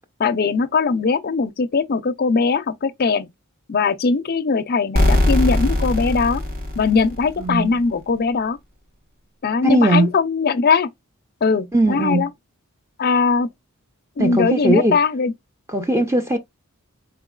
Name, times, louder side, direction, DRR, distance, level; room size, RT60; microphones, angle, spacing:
voice 1, 0.2-3.3 3.7-6.4 6.8-8.6 9.4-10.9 11.4-12.3 13.0-13.5 14.2-15.3, left 4 dB, 45° left, 0.5 m, -20 dB
sound 1, 4.9-7.7, left 1 dB, 40° right, 1.2 m, -20 dB
voice 2, 7.4-7.8 9.6-10.1 11.7-12.3 14.2-15.0 15.7-16.4, right 1 dB, 15° right, 0.6 m, -18 dB
4.3 x 3.0 x 2.3 m
head